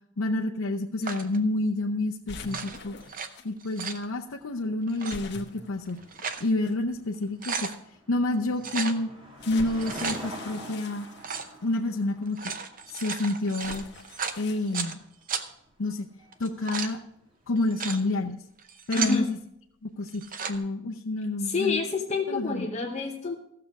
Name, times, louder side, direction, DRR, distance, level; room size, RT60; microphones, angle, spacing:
voice 1, 0.2-3.0 3.4-6.0 6.4-7.7 8.1-9.1 9.5-11.1 11.6-12.5 12.9-13.8 14.4-15.0 15.8-16.1 16.4-17.0 17.5-18.4 18.9-19.4 19.8-20.2 20.5-21.8 22.3-22.7, left 2 dB, 80° left, -1 dB, 0.7 m, -28 dB
sound 1, 1.0-1.4 2.4-3.3 3.6-4.0 4.9-5.2 5.9-6.5 6.9-7.0 7.2-7.8 8.6-9.0 9.6-10.2 11.2-11.5 12.2-14.9 15.3-15.4 16.3-16.9 17.6-18.0 18.6-19.2 20.1-20.6, right 6 dB, 40° right, 0.7 m, -34 dB
sound 2, 2.3-3.5 5.1-6.7 7.5-7.6 9.4-11.7 13.6-14.7, left 3 dB, 55° left, 1.1 m, -44 dB
sound 3, 4.3-17.8, equal, 25° right, 1.8 m, -47 dB
voice 2, 18.9-19.3 21.4-23.3, left 4 dB, 35° left, 2 dB, 0.9 m, -28 dB
15.5 x 6.8 x 4.8 m, 0.74 s
head